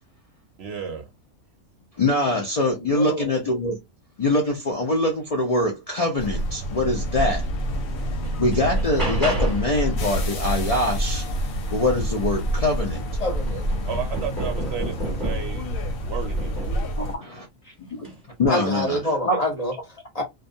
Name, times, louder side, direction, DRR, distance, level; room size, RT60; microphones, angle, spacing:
voice 1, 0.6-1.0 13.9-15.8 16.0-16.7, right 7 dB, 60° right, 0.7 m, -33 dB
voice 2, 2.0-3.8 4.2-7.5 8.4-11.3 11.7-13.0 17.0-17.5 17.9-18.1 18.4-19.0 19.2-19.4, left 2 dB, 65° left, 0.3 m, -23 dB
voice 3, 2.8-3.3 13.2-13.6 17.7-17.8 18.5-20.2, left 1 dB, 30° left, 1.0 m, -27 dB
sound 1, 6.2-17.2, equal, 80° left, 1.1 m, -27 dB
sound 2, 7.4-7.5 8.0-9.8 12.2-12.3 12.7-15.7 16.4-16.9 17.9-18.2, right 2 dB, 15° right, 1.0 m, -33 dB
2.3 x 2.2 x 2.6 m
omnidirectional pair, 1.4 m